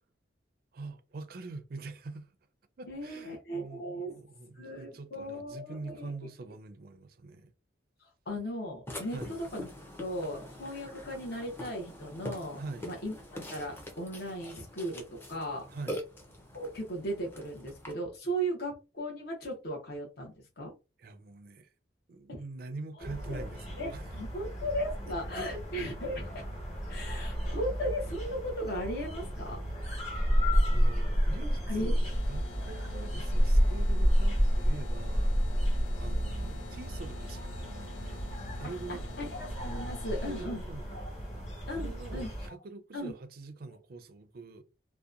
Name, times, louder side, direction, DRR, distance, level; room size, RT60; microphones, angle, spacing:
voice 1, 0.7-2.3 2.8-7.5 9.1-9.4 12.6-12.9 15.7-16.0 21.0-21.7 22.1-24.1 25.4-25.5 30.0-30.4 30.7-39.1 40.3-41.0 41.7-44.6, right 3 dB, 50° right, 0.4 m, -44 dB
voice 2, 2.9-4.1 4.6-6.1 8.0-9.7 10.0-15.7 16.5-20.7 22.3-22.4 23.0-23.5 23.8-26.4 26.9-29.6 31.7-31.9 36.0-36.5 38.6-40.6 40.9-41.1 41.7-42.3 42.9-43.1, equal, 55° left, 0.8 m, -37 dB
Burping eructation, 8.9-17.9, equal, 10° left, 0.5 m, -44 dB
sound 1, 23.0-42.5, equal, 40° left, 1.3 m, -31 dB
sound 2, 32.0-40.4, left 2 dB, 80° left, 0.3 m, -46 dB
2.8 x 2.1 x 2.4 m
head